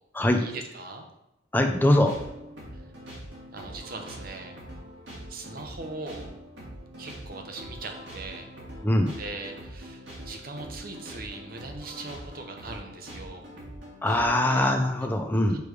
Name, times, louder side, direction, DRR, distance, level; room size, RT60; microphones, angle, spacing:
voice 1, 0.4-1.1 2.7-2.8 3.5-4.6 5.3-6.3 7.0-8.5 9.2-13.4 14.5-14.7 15.5-15.6, right 3 dB, 55° right, 4 dB, 0.9 m, -40 dB
voice 2, 1.5-2.1 8.8-9.1 14.0-15.6, left 1 dB, 10° left, 3 dB, 0.6 m, -22 dB
sound 1, 1.8-14.6, equal, 80° right, 2.1 m, -43 dB
6.7 x 3.4 x 4.8 m, 0.90 s
head